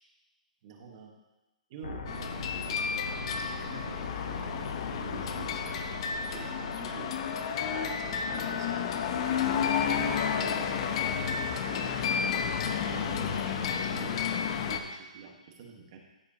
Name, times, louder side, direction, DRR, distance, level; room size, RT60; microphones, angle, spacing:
voice 1, 0.6-1.1 1.7-5.8 6.3-7.1 7.7-8.8 9.3-9.9 10.2-16.0, right 6 dB, 40° right, 1 dB, 1.4 m, -47 dB
sound 1, 1.8-7.8, left 3 dB, 90° left, 1.1 m, -41 dB
sound 2, 2.1-14.8, left 7 dB, 45° left, 0.7 m, -31 dB
14.0 x 4.9 x 2.9 m, 1.1 s
hypercardioid pair, 160°, 4 cm